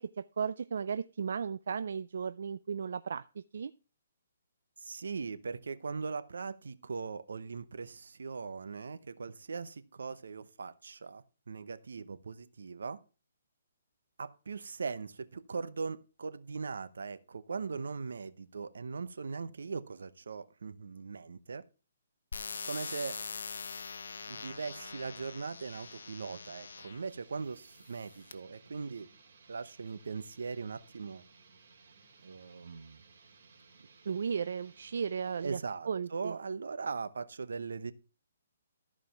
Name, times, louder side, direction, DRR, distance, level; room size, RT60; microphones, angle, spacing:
voice 1, 0.0-3.2 3.5-3.7 34.1-35.6 35.9-36.3, right 6 dB, 65° right, 0.4 m, -35 dB
voice 2, 4.8-13.0 14.2-21.6 22.6-23.2 24.3-29.1 29.5-31.2 32.2-33.0 35.4-37.9, right 5 dB, 80° right, 0.9 m, -40 dB
sound 1, 22.3-27.1 27.8-28.3, left 5 dB, 80° left, 0.8 m, -43 dB
sound 2, 24.1-35.6, right 4 dB, 50° right, 2.7 m, -60 dB
13.5 x 5.0 x 5.8 m
hypercardioid pair, 165°, 0 cm